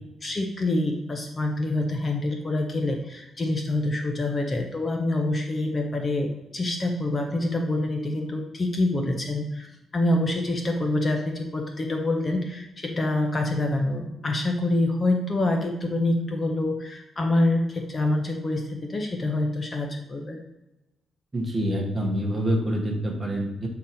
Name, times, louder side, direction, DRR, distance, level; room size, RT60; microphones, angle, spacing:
voice 1, 0.2-9.7 9.9-20.4, left 2 dB, 25° left, 3 dB, 0.6 m, -26 dB
voice 2, 21.3-23.7, equal, 20° right, 0 dB, 1.2 m, -26 dB
7.7 x 3.9 x 4.2 m, 0.97 s
cardioid pair, 155°, 0 cm